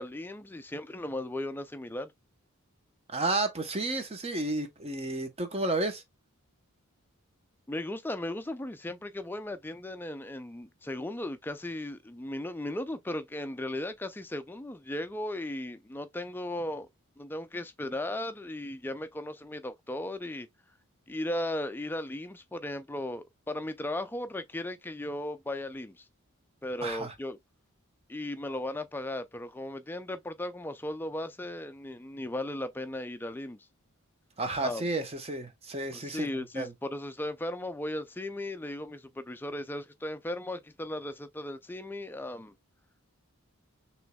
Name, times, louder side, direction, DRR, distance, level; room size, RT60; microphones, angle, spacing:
voice 1, 0.0-2.1 7.7-16.9 17.2-20.5 21.1-26.1 26.6-27.4 28.1-33.7 34.6-34.9 35.9-42.5, left 1 dB, 10° left, 0.3 m, -36 dB
voice 2, 3.1-6.0 26.8-27.1 34.4-36.3 36.5-36.7, right 2 dB, 25° right, 0.8 m, -31 dB
6.0 x 3.1 x 2.2 m
head